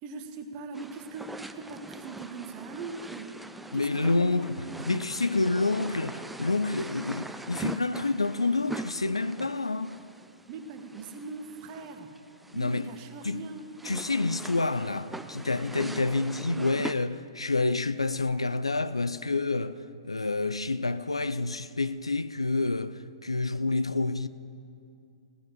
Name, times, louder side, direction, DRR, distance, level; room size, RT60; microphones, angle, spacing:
voice 1, 0.0-3.3 3.7-5.1 10.5-12.1 12.5-13.7, right 4 dB, 35° right, 1.2 m, -41 dB
sound 1, 0.7-16.9, right 2 dB, 5° right, 0.4 m, -42 dB
voice 2, 3.7-10.0 12.5-12.9 13.2-13.4 13.8-24.3, left 3 dB, 85° left, 0.5 m, -28 dB
17.0 x 8.2 x 7.3 m
figure-of-eight pair, 115°, 3 cm